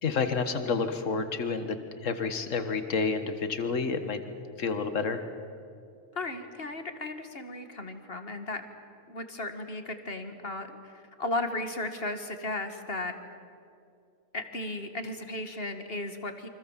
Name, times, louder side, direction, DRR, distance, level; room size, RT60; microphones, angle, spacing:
voice 1, 0.0-4.2 4.6-5.3, left 5 dB, 75° left, 8 dB, 1.8 m, -29 dB
voice 2, 6.1-8.6 9.1-13.1 14.3-16.5, left 2 dB, 50° left, 7 dB, 2.2 m, -35 dB
28.5 x 25.0 x 7.5 m, 2.4 s
omnidirectional pair, 1.3 m